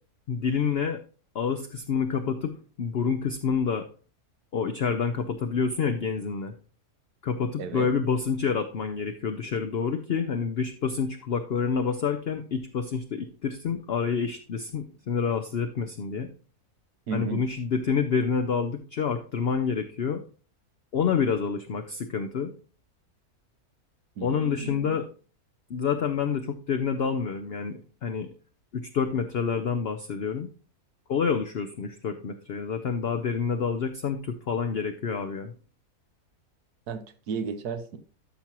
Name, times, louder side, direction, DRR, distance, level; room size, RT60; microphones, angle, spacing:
voice 1, 0.3-1.0 1.3-2.5 2.8-3.9 4.5-6.5 7.2-16.3 17.1-20.2 20.9-22.5 24.2-25.1 25.7-28.3 28.7-30.5 31.1-35.5, left 6 dB, 55° left, 6 dB, 0.7 m, -28 dB
voice 2, 7.6-7.9 17.1-17.4 24.2-25.0 36.9-38.0, right 5 dB, 85° right, 9 dB, 1.4 m, -34 dB
13.0 x 5.9 x 3.0 m, 0.37 s
omnidirectional pair, 1.6 m